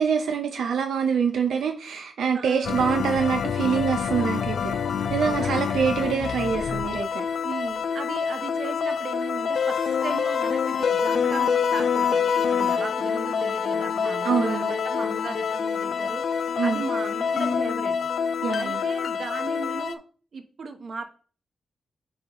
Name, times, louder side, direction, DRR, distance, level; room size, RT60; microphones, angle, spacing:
voice 1, 0.0-4.8 5.1-7.2 14.2-14.7 16.6-16.8 18.4-18.8, right 6 dB, 85° right, 5 dB, 0.6 m, -25 dB
voice 2, 2.3-2.8 5.3-5.6 7.4-16.2 16.6-18.1 18.6-20.0 20.3-21.0, right 4 dB, 55° right, 6 dB, 1.0 m, -37 dB
sound 1, 2.6-19.9, left 6 dB, 65° left, 0.4 m, -26 dB
8.4 x 4.0 x 3.0 m, 0.41 s
wide cardioid pair, 125°, 0 cm